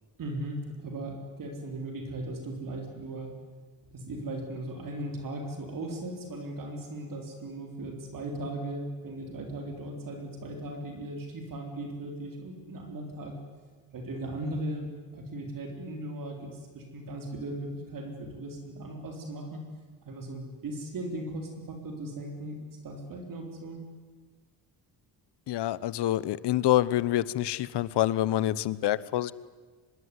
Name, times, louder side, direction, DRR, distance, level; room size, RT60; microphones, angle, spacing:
voice 1, 0.2-3.3 3.9-13.4 13.9-19.6 20.0-22.6 22.8-23.8, right 1 dB, 50° right, 4 dB, 4.2 m, -37 dB
voice 2, 25.5-29.3, left 14 dB, 70° left, 19 dB, 1.1 m, -26 dB
24.5 x 22.0 x 9.8 m, 1.4 s
cardioid pair, 155°, 43 cm